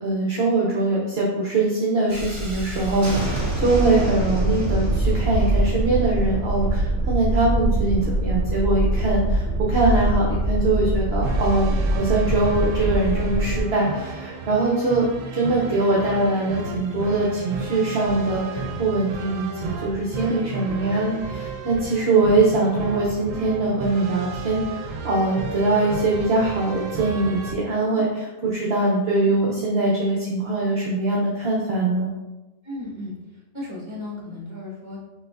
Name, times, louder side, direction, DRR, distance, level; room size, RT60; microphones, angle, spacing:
voice 1, 0.0-15.1 15.3-32.1, right 2 dB, 55° right, -4 dB, 0.9 m, -22 dB
Thunderstorm, 2.1-13.6, right 1 dB, 40° right, 1.4 m, -23 dB
sound 1, 11.2-27.5, right 4 dB, 80° right, 1.0 m, -33 dB
voice 2, 32.6-33.1 33.5-35.0, left 2 dB, 20° right, -5 dB, 1.4 m, -35 dB
6.2 x 3.3 x 2.5 m, 1.1 s
omnidirectional pair, 1.3 m